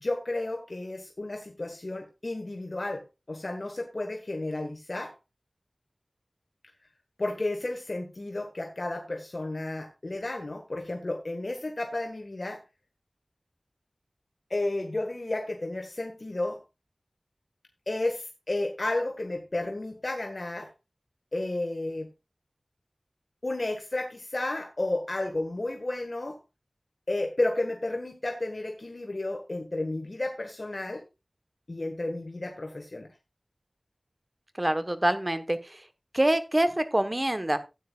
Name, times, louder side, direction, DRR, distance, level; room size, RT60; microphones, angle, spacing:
voice 1, 0.0-3.0 3.3-5.1 7.2-12.6 14.5-16.6 17.9-20.7 21.3-22.1 23.4-26.4 27.1-31.0 31.7-33.1, left 2 dB, 55° left, 3 dB, 1.5 m, -32 dB
voice 2, 34.6-35.8 36.1-37.6, right 1 dB, 30° right, 10 dB, 1.1 m, -25 dB
14.0 x 9.3 x 2.4 m, 0.25 s
wide cardioid pair, 60°, 0 cm